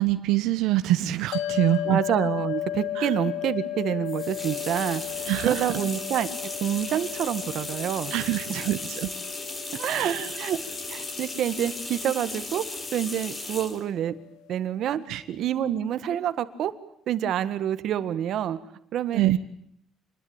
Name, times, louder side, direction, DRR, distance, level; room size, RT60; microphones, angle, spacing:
voice 1, 0.0-2.0 2.9-3.2 5.3-5.7 8.1-9.1 9.9-10.4 15.1-15.2 19.1-19.4, right 14 dB, 75° right, 10 dB, 1.2 m, -25 dB
sound 1, 1.3-13.8, left 12 dB, 85° left, 1.1 m, -35 dB
voice 2, 1.9-5.0 5.4-6.3 6.6-8.1 8.5-8.6 9.8-10.6 10.9-12.6 12.9-14.1 14.5-15.0 15.3-16.7 17.1-18.6 18.9-19.4, right 10 dB, 50° right, 13 dB, 1.7 m, -27 dB
sound 2, 4.1-13.8, left 2 dB, 20° left, 4.5 m, -36 dB
27.0 x 21.5 x 8.9 m, 0.70 s
cardioid pair, 165°, 0 cm